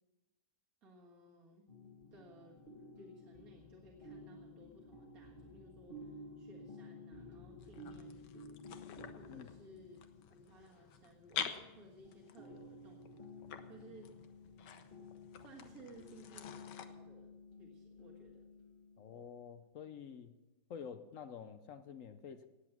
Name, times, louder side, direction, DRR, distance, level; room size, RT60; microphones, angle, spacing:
voice 1, 0.8-1.7 2.1-2.6 2.9-8.6 9.2-10.0 10.3-13.3 13.6-14.2 15.4-17.3 17.6-18.5, right 1 dB, 55° right, -3 dB, 2.0 m, -59 dB
sound 1, 1.7-19.6, left 2 dB, 35° left, 1.8 m, -54 dB
sound 2, 7.6-16.9, left 8 dB, 80° left, 1.5 m, -48 dB
voice 2, 19.0-20.4 20.7-22.5, left 7 dB, 65° left, 11 dB, 0.9 m, -49 dB
18.0 x 8.3 x 6.0 m, 1.1 s
omnidirectional pair, 1.8 m